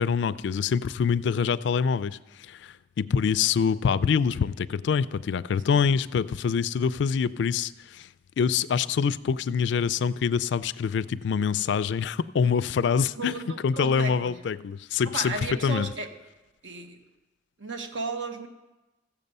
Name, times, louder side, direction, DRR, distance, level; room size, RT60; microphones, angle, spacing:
voice 1, 0.0-8.1 8.4-13.4 13.6-15.3 15.6-15.9, left 6 dB, 70° left, 0.3 m, -25 dB
voice 2, 13.2-14.4 15.0-16.1 16.6-17.0 17.6-18.5, right 3 dB, 85° right, 1.3 m, -34 dB
15.0 x 7.4 x 5.4 m
head